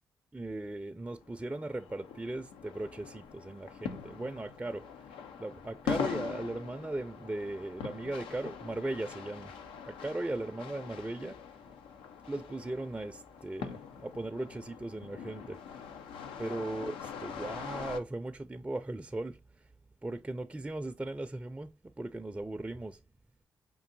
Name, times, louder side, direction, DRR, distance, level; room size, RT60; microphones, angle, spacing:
voice 1, 0.3-11.6 12.3-15.9 16.4-19.7 20.0-23.0, right 2 dB, 15° right, 0.5 m, -38 dB
sound 1, 1.1-18.0, left 7 dB, 85° left, 0.5 m, -43 dB
5.3 x 2.6 x 2.6 m
supercardioid pair, 45°, 9 cm